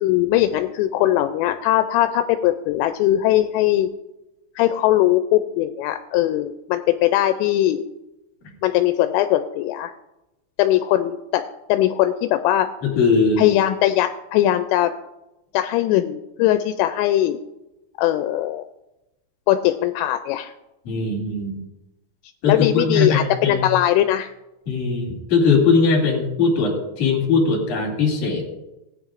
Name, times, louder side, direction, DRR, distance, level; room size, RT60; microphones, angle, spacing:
voice 1, 0.0-3.9 4.6-7.8 8.6-9.9 10.6-11.4 11.7-12.7 13.4-14.9 15.5-17.4 18.0-18.7 19.5-20.5 22.5-24.3, left 13 dB, 85° left, 8 dB, 3.0 m, -20 dB
voice 2, 12.8-13.4 20.8-21.6 22.4-23.7 24.7-28.4, left 4 dB, 45° left, 0 dB, 3.3 m, -20 dB
18.5 x 9.7 x 2.5 m, 0.94 s
omnidirectional pair, 5.8 m